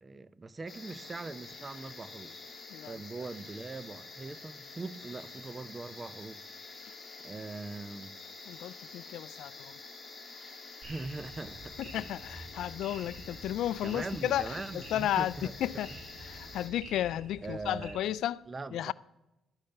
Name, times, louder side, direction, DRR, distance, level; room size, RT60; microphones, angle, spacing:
voice 1, 0.0-2.3 2.8-6.4 7.2-8.2 10.9-12.1 13.8-15.5 15.9-16.0 17.4-18.2 18.5-18.9, right 3 dB, 25° right, 0.6 m, -41 dB
sound 1, 0.7-16.7, left 3 dB, 25° left, 3.7 m, -48 dB
voice 2, 8.5-9.8 11.8-15.3 15.6-15.9 16.3-18.4 18.7-18.9, left 12 dB, 80° left, 0.3 m, -33 dB
sound 2, 10.8-17.9, right 2 dB, 60° right, 4.3 m, -49 dB
12.0 x 8.5 x 5.8 m
cardioid pair, 90°, 0 cm